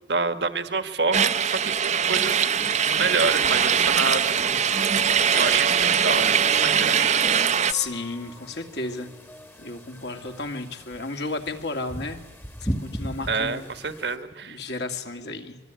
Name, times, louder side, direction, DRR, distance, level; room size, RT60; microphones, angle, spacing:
voice 1, 0.1-4.4 5.3-7.2 13.3-14.6, right 4 dB, 65° right, 10 dB, 1.6 m, -28 dB
sound 1, 1.1-7.7, right 7 dB, 40° right, 0.8 m, -22 dB
sound 2, 2.6-14.2, equal, 15° left, 1.3 m, -40 dB
voice 2, 7.7-9.1 9.6-12.2 12.6-13.7 14.4-15.6, left 3 dB, 65° left, 5 dB, 2.4 m, -32 dB
25.0 x 23.0 x 9.2 m, 1.2 s
head